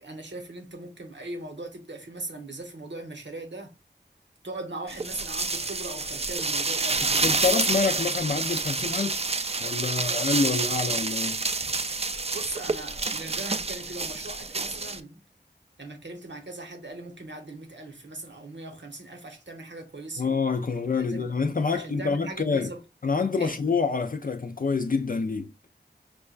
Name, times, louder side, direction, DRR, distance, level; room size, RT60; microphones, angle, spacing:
voice 1, 0.0-3.7 4.4-7.3 12.3-15.2 15.8-20.2 21.0-21.3 21.7-22.8 23.4-23.6, right 2 dB, 85° right, 0.9 m, -39 dB
sound 1, 4.9-15.0, right 3 dB, 35° right, 0.4 m, -28 dB
voice 2, 7.0-9.3 9.6-11.4 20.2-22.7 23.0-25.5, left 4 dB, 50° left, 0.4 m, -27 dB
5.3 x 2.2 x 2.3 m
wide cardioid pair, 45°, 18 cm